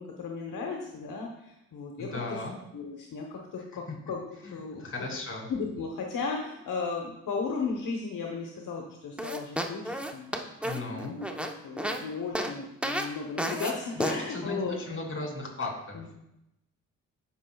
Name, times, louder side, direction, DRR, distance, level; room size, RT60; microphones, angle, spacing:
voice 1, 0.0-2.4 2.7-4.8 5.5-10.5 10.8-14.8 15.9-16.1, left 4 dB, 70° left, 0 dB, 1.1 m, -35 dB
voice 2, 2.0-2.6 3.9-4.0 4.4-5.5 10.6-11.2 13.9-16.1, left 2 dB, 40° left, 0 dB, 2.8 m, -36 dB
sound 1, 9.2-12.0 12.3-12.5 12.8-13.1 13.4-13.7 14.0-14.2, equal, 5° right, 0.9 m, -31 dB
13.0 x 5.8 x 2.3 m, 0.85 s
cardioid pair, 65°, 33 cm